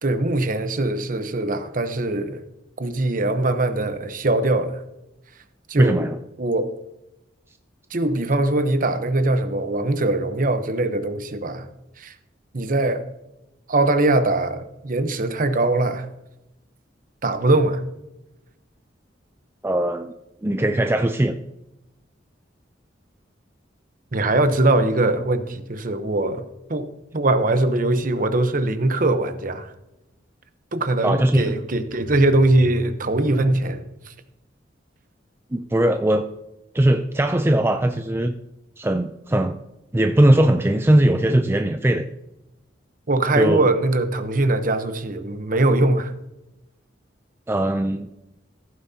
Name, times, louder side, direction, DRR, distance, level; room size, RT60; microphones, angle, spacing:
voice 1, 0.0-2.4 2.8-4.8 5.7-6.1 6.4-6.7 7.9-11.7 12.0-12.1 12.5-13.0 13.7-16.1 17.2-17.8 24.1-26.4 26.7-26.9 27.1-29.7 30.7-34.1 43.1-46.1, right 2 dB, 45° right, 0.9 m, -21 dB
voice 2, 5.8-6.2 19.6-20.1 20.4-21.4 31.0-31.5 35.5-36.3 36.7-38.3 38.8-39.6 39.9-42.1 43.4-43.6 47.5-48.1, right 1 dB, 15° right, 0.4 m, -19 dB
15.0 x 9.2 x 2.8 m
head